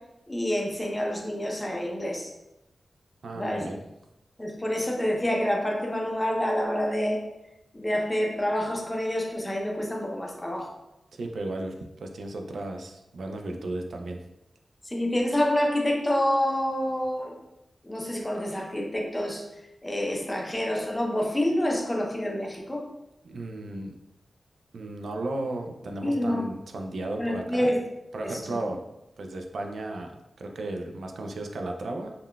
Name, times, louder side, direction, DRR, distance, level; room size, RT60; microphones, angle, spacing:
voice 1, 0.3-2.3 3.3-3.7 4.4-7.2 7.7-10.7 14.8-17.4 17.8-19.4 19.8-22.8 26.0-26.5 27.2-27.8 28.2-28.4, left 1 dB, 15° left, 0 dB, 0.5 m, -27 dB
voice 2, 3.2-3.8 11.1-14.2 23.2-24.0 24.7-27.7 28.1-28.8 29.2-32.1, right 2 dB, 75° right, 3 dB, 0.3 m, -34 dB
3.6 x 2.2 x 2.2 m, 0.91 s
wide cardioid pair, 125°, 0 cm